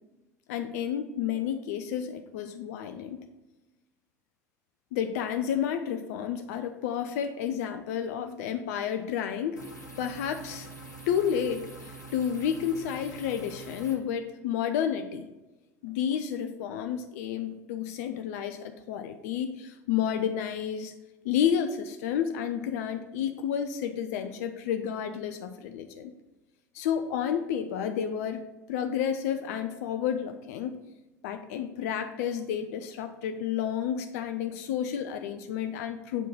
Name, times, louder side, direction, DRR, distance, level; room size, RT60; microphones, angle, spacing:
voice 1, 0.5-3.2 4.9-9.6 10.0-10.7 11.1-15.3 15.8-20.9 21.2-26.1 26.7-28.4 28.7-30.7 31.2-36.3, left 8 dB, 60° left, 8 dB, 0.5 m, -31 dB
sound 1, 9.6-13.9, right 2 dB, 85° left, 1.3 m, -45 dB
7.5 x 4.5 x 4.7 m, 1.1 s
figure-of-eight pair, 70°, 9 cm